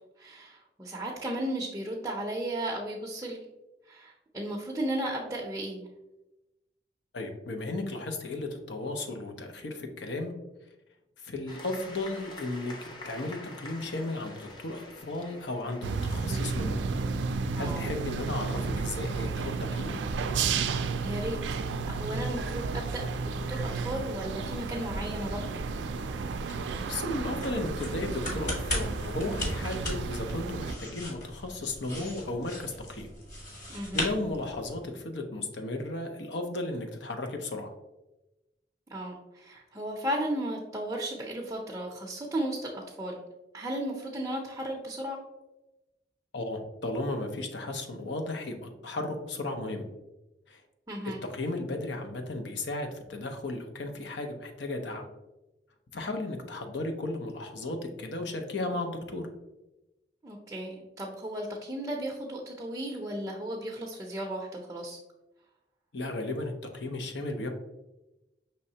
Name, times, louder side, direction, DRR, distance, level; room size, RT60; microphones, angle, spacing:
voice 1, 0.2-3.4 3.9-5.9 17.6-17.8 21.0-21.6 21.8-25.6 33.7-34.1 38.9-43.2 43.5-45.2 50.9-51.2 60.2-65.0, right 1 dB, 15° right, -1 dB, 0.5 m, -35 dB
voice 2, 7.1-10.3 11.2-16.8 17.6-20.0 26.9-33.1 33.6-37.7 46.3-49.9 50.5-50.6 51.0-55.1 55.9-59.3 65.9-67.5, left 2 dB, 80° left, 5 dB, 0.6 m, -35 dB
sound 1, 11.5-21.3, left 2 dB, 25° left, 0.6 m, -49 dB
sound 2, 15.8-30.7, right 4 dB, 90° right, 0.4 m, -32 dB
sound 3, 24.3-34.9, left 1 dB, 45° left, 1.3 m, -39 dB
5.4 x 3.2 x 2.8 m, 1.0 s
head